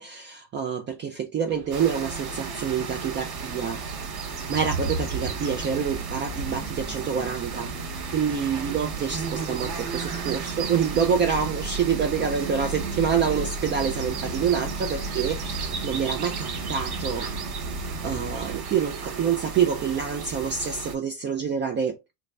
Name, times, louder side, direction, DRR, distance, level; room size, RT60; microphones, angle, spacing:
voice 1, 0.0-3.8 4.5-7.7 8.1-17.3 18.0-22.1, right 7 dB, 25° right, 0.3 m, -27 dB
sound 1, 1.5-18.6, right 3 dB, 85° right, 0.9 m, -36 dB
sound 2, 1.7-21.0, right 5 dB, 55° right, 2.2 m, -35 dB
3.9 x 2.2 x 3.2 m
supercardioid pair, 120°, 45 cm